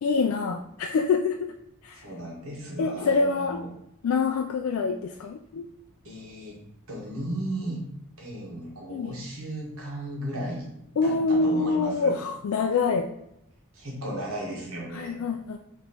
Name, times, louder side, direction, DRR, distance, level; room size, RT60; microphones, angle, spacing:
voice 1, 0.0-1.5 1.8-2.1 2.8-3.7 4.0-5.7 8.9-9.2 11.0-13.1 14.9-15.6, left 4 dB, 70° left, 4 dB, 0.3 m, -26 dB
voice 2, 2.0-3.7 6.0-6.6 6.9-7.8 8.2-10.7 11.0-12.1 13.7-15.3, right 1 dB, 70° right, -2 dB, 1.3 m, -35 dB
5.3 x 3.0 x 2.9 m, 0.82 s
head